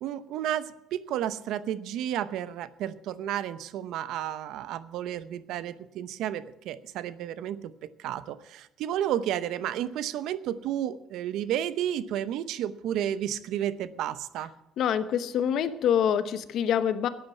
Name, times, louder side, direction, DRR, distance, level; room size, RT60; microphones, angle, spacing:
voice 1, 0.0-14.5, right 11 dB, 75° right, 15 dB, 0.7 m, -32 dB
voice 2, 14.8-17.1, left 9 dB, 65° left, 11 dB, 1.0 m, -25 dB
13.0 x 8.7 x 7.1 m, 0.87 s
cardioid pair, 100°, 0 cm